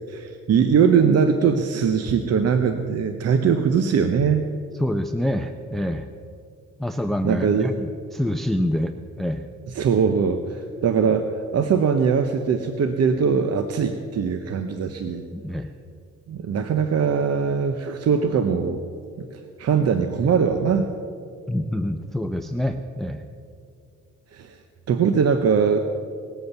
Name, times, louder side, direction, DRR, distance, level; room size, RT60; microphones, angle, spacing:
voice 1, 0.1-4.4 7.2-7.7 9.7-15.2 16.3-18.8 19.2-20.9 24.3-24.6 24.9-25.8, right 6 dB, 55° right, 8 dB, 0.9 m, -21 dB
voice 2, 4.8-6.1 6.8-9.5 15.3-15.7 21.5-23.2, left 1 dB, ahead, 8 dB, 0.6 m, -26 dB
19.5 x 7.9 x 7.0 m, 2.4 s
cardioid pair, 90°, 30 cm